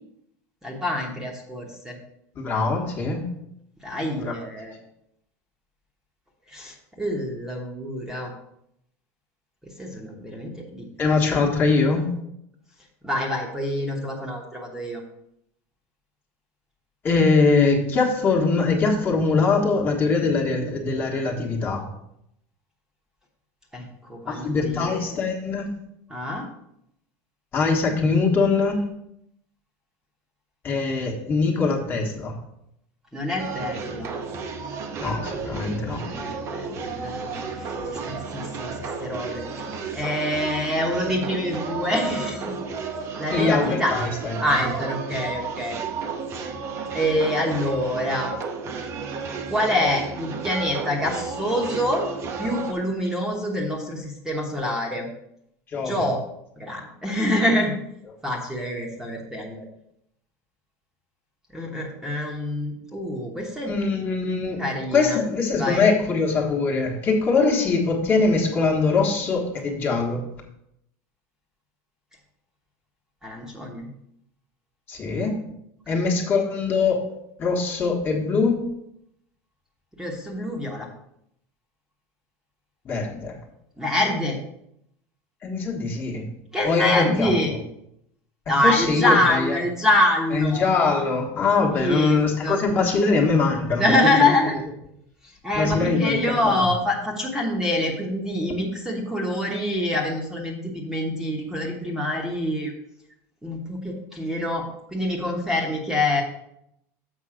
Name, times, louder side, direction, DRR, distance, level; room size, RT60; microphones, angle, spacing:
voice 1, 0.6-2.0 3.8-4.7 6.5-8.3 9.8-10.9 13.0-15.0 23.7-25.0 26.1-26.4 33.1-34.1 36.0-39.7 39.9-42.5 43.2-43.9 44.4-45.8 46.9-48.3 49.5-52.0 52.4-55.1 55.8-56.2 56.6-57.7 58.2-59.6 61.5-63.7 64.6-65.2 65.6-65.8 73.2-73.9 75.9-76.0 80.0-80.9 83.8-84.4 86.5-87.5 88.5-90.7 91.7-92.6 93.8-94.5 95.4-100.6 100.8-102.7 103.4-104.6 104.9-106.2, left 1 dB, 5° right, -1 dB, 1.1 m, -25 dB
voice 2, 2.3-3.2 4.2-4.3 11.0-12.0 17.0-21.8 24.3-25.7 27.5-28.8 30.6-32.4 35.0-36.0 43.3-44.3 55.7-56.1 63.7-64.6 64.9-70.2 74.9-75.4 75.9-77.1 77.4-78.7 82.8-83.4 85.4-86.2 86.6-87.5 88.5-89.6 90.3-94.3 95.5-96.7, left 4 dB, 25° left, 0 dB, 1.4 m, -22 dB
sound 1, 33.4-52.7, right 5 dB, 35° right, 0.8 m, -32 dB
7.3 x 5.3 x 5.0 m, 0.77 s
supercardioid pair, 160°, 8 cm